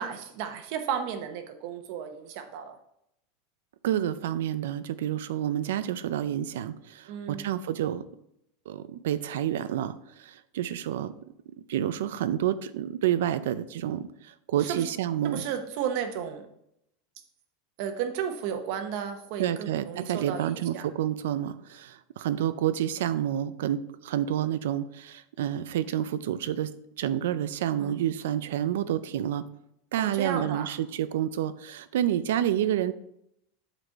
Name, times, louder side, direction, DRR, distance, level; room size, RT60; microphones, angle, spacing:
voice 1, 0.0-2.8 7.1-7.5 14.6-14.8 15.3-16.5 17.8-20.8 27.8-27.9 30.0-30.7, right 8 dB, 50° right, 7 dB, 1.0 m, -33 dB
voice 2, 3.8-8.1 8.7-11.1 11.7-15.4 19.4-29.4 29.9-32.9, right 11 dB, 85° right, 14 dB, 0.5 m, -29 dB
8.0 x 4.2 x 4.6 m, 0.76 s
supercardioid pair, 175°, 0 cm